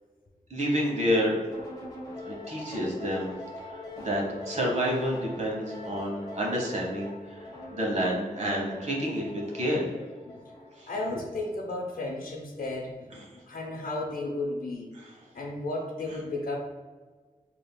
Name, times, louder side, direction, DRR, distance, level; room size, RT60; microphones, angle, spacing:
voice 1, 0.5-1.4 2.3-3.3 3.7-9.9 10.8-10.9 13.1-13.2, equal, 55° right, -2 dB, 1.1 m, -29 dB
sound 1, 1.5-10.9, left 1 dB, 30° left, 1.0 m, -43 dB
voice 2, 10.9-14.9 15.3-16.6, left 2 dB, 85° left, 1 dB, 0.7 m, -34 dB
5.3 x 2.9 x 2.2 m, 1.4 s
wide cardioid pair, 115°, 14 cm